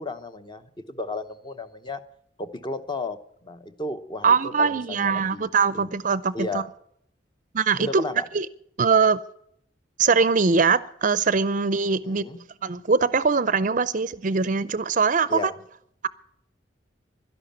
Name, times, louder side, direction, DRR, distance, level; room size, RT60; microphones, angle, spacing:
voice 1, 0.0-2.0 2.4-3.2 3.4-5.5 5.7-5.9 6.3-6.6 7.8-8.2 12.0-12.4 15.3-15.5, left 2 dB, 25° left, 0.9 m, -33 dB
voice 2, 4.2-6.6 7.5-8.0 8.3-8.5 8.8-9.2 10.0-12.3 12.6-15.4, right 5 dB, 45° right, 0.5 m, -22 dB
12.0 x 11.0 x 8.8 m
head